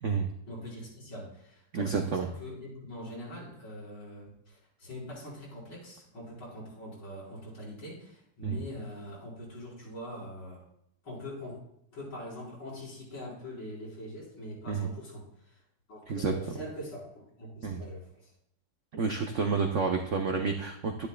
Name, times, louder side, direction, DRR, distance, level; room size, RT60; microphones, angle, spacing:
voice 1, 0.5-10.6 11.0-11.6 11.9-15.6 15.9-18.3, equal, 75° left, -6 dB, 5.2 m, -43 dB
voice 2, 1.7-2.3 8.4-8.6 14.7-14.9 16.1-16.3 17.6-17.8 18.9-21.1, right 5 dB, 75° right, 4 dB, 0.6 m, -29 dB
11.5 x 10.5 x 2.2 m, 0.72 s
omnidirectional pair, 2.1 m